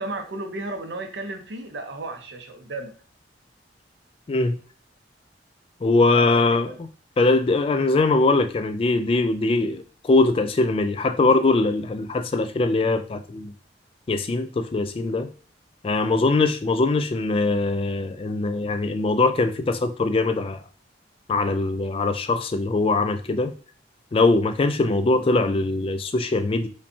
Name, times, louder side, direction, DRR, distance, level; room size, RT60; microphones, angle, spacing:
voice 1, 0.0-2.9 6.1-6.8 16.0-16.3, right 2 dB, 80° right, 0.7 m, -34 dB
voice 2, 5.8-6.9 7.2-13.5 14.1-15.3 15.8-20.6 21.3-23.5 24.1-26.7, left 3 dB, 30° left, 0.3 m, -22 dB
5.3 x 2.2 x 2.7 m
head